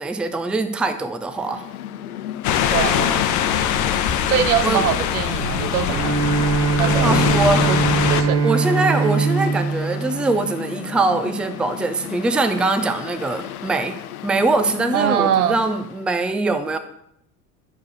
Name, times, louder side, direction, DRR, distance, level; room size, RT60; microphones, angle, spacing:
voice 1, 0.0-1.6 4.6-4.8 7.0-7.8 8.4-14.0 14.2-16.8, right 3 dB, ahead, 9 dB, 0.5 m, -22 dB
Mechanical fan, 1.2-16.1, left 12 dB, 65° left, 0.7 m, -34 dB
sound 1, 2.4-8.2, left 9 dB, 40° left, 0.9 m, -22 dB
voice 2, 2.7-3.3 4.2-6.2 6.8-7.2 7.7-7.8 8.1-8.5 14.9-15.6, right 10 dB, 70° right, 14 dB, 0.7 m, -22 dB
Bowed string instrument, 5.9-11.2, right 5 dB, 50° right, 1.4 m, -22 dB
10.5 x 6.4 x 4.8 m, 0.73 s
figure-of-eight pair, 70°, 46 cm